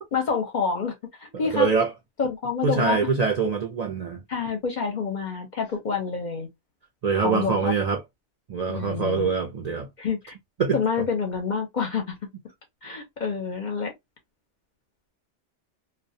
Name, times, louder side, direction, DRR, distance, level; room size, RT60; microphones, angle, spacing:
voice 1, 0.1-1.7 2.2-3.0 4.3-6.5 7.2-7.7 8.7-9.3 10.0-10.3 10.7-12.1 12.8-13.9, left 5 dB, 50° left, 0.6 m, -28 dB
voice 2, 1.5-1.9 2.6-4.2 7.0-8.0 8.5-9.9 10.6-10.8, right 5 dB, 60° right, 0.4 m, -24 dB
2.2 x 2.1 x 2.6 m
omnidirectional pair, 1.2 m